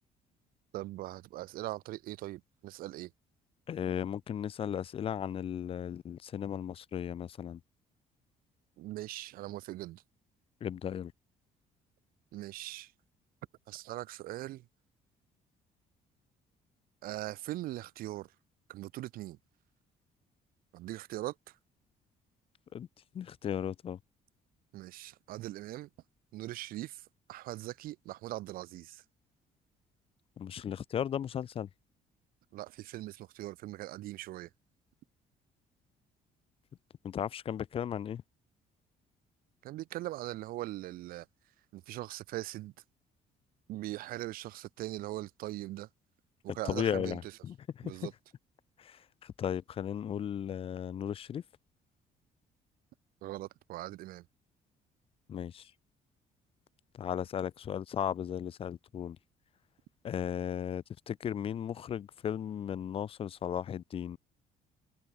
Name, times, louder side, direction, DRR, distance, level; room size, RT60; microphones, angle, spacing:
voice 1, 0.7-3.1 8.8-10.0 12.3-12.9 13.7-14.6 17.0-18.3 18.7-19.4 20.7-21.6 24.7-25.9 26.3-29.0 32.5-34.5 39.6-41.3 41.7-42.7 43.7-45.9 46.4-47.3 47.8-48.1 53.2-54.2, right 16 dB, 80° right, 5.7 m, -41 dB
voice 2, 3.7-7.6 10.6-11.1 22.7-22.9 23.1-24.0 30.4-31.7 37.0-38.2 46.5-48.1 48.8-51.4 55.3-55.7 56.9-59.2 60.0-64.2, left 9 dB, 40° left, 4.3 m, -36 dB
cardioid pair, 175°, 15 cm